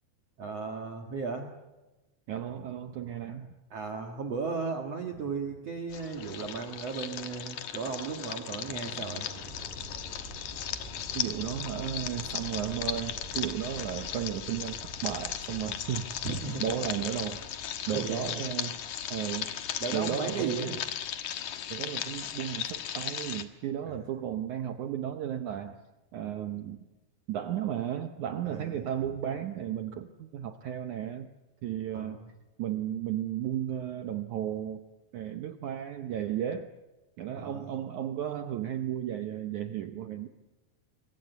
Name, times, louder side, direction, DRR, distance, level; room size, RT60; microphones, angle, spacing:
voice 1, 0.4-1.5 3.3-3.4 3.7-9.3 16.2-16.8 17.9-18.4 19.8-20.8 23.9-24.0 28.5-29.1 31.9-32.2 37.4-37.7, right 5 dB, 50° right, 3 dB, 2.2 m, -35 dB
voice 2, 2.3-3.5 11.2-16.1 16.6-17.4 17.9-18.8 19.1-19.5 19.9-20.8 21.7-25.8 26.1-26.9 27.3-31.3 31.6-32.2 32.6-34.8 35.1-36.7 37.2-40.3, right 10 dB, 75° right, 8 dB, 1.8 m, -34 dB
sound 1, 5.9-23.4, left 10 dB, 60° left, 2.4 m, -37 dB
sound 2, 9.0-20.9, right 1 dB, 10° right, 4.4 m, -47 dB
26.5 x 24.0 x 8.1 m, 1.1 s
omnidirectional pair, 4.7 m